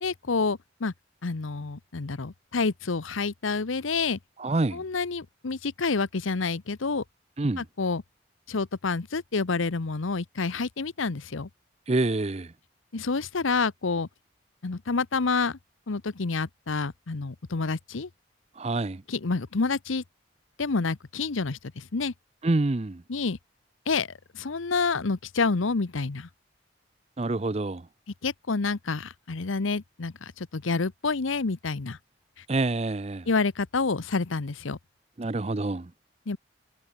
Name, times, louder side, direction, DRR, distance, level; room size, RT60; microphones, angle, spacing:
voice 1, 0.0-0.9 1.2-4.2 4.7-7.0 7.6-8.0 8.5-11.5 12.9-14.1 14.6-15.6 15.9-18.1 19.1-20.0 20.6-22.1 23.1-23.4 23.9-24.1 24.3-26.3 28.2-32.0 33.3-34.8 36.3-36.4, left 4 dB, 90° left, 0.9 m, -28 dB
voice 2, 4.4-4.8 7.4-7.6 11.9-12.5 18.6-19.0 22.4-23.0 27.2-27.9 32.5-33.3 35.2-35.9, right 2 dB, 30° right, 0.6 m, -27 dB
head